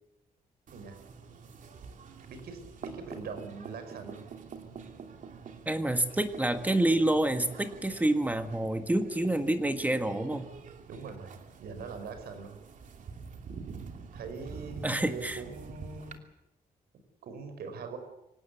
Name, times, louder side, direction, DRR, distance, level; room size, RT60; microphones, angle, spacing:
sound 1, 0.7-16.2, right 5 dB, 55° right, 2.8 m, -46 dB
voice 1, 2.3-4.3 10.9-12.6 14.1-16.2 17.2-18.0, right 5 dB, 85° right, 8 dB, 5.4 m, -42 dB
voice 2, 5.6-10.5 14.8-15.4, right 1 dB, 10° right, 8 dB, 1.7 m, -28 dB
25.5 x 18.0 x 8.4 m, 0.87 s
cardioid pair, 135°, 16 cm